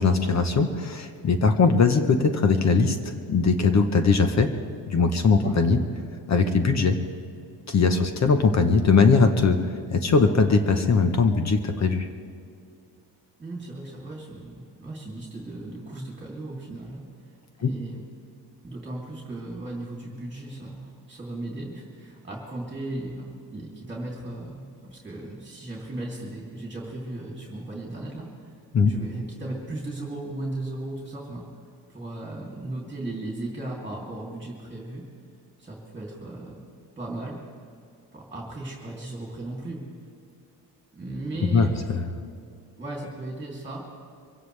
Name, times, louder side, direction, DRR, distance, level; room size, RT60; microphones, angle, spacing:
voice 1, 0.0-3.0 3.3-4.5 4.9-5.8 6.3-7.0 7.7-9.6 9.9-12.1 17.6-17.7 28.7-28.9 41.5-41.7 41.9-42.1, left 4 dB, 40° left, 7 dB, 1.0 m, -20 dB
voice 2, 13.4-17.0 17.6-18.0 18.6-28.5 28.8-31.4 31.9-35.1 35.6-36.6 37.0-37.4 38.1-39.8 40.9-41.7 42.8-43.9, right 2 dB, 15° right, -3 dB, 2.9 m, -36 dB
24.5 x 16.5 x 3.3 m, 2.3 s
cardioid pair, 140°, 42 cm